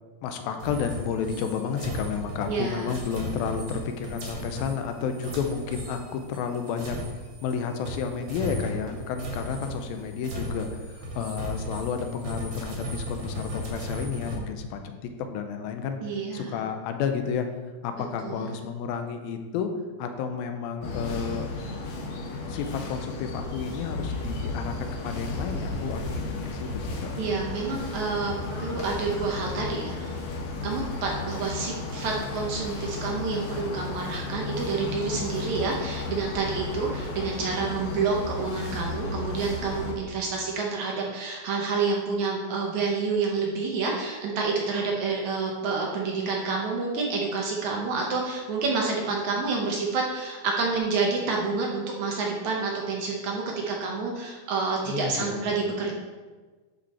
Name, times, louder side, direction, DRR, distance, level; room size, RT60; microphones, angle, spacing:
voice 1, 0.2-7.0 7.4-14.9 15.2-16.0 16.3-17.5 17.8-19.7 20.0-21.8 22.5-27.1 54.9-55.5, left 6 dB, 90° left, 6 dB, 2.5 m, -31 dB
sound 1, 0.6-7.6 7.8-14.4, equal, 50° right, 2.3 m, -36 dB
voice 2, 2.5-2.9 16.0-16.6 18.2-18.5 27.2-30.2 30.6-56.0, right 4 dB, 65° right, 0 dB, 2.0 m, -28 dB
sound 2, 20.8-39.9, left 3 dB, 70° left, 1.2 m, -34 dB
11.5 x 5.3 x 4.3 m, 1.3 s
omnidirectional pair, 4.2 m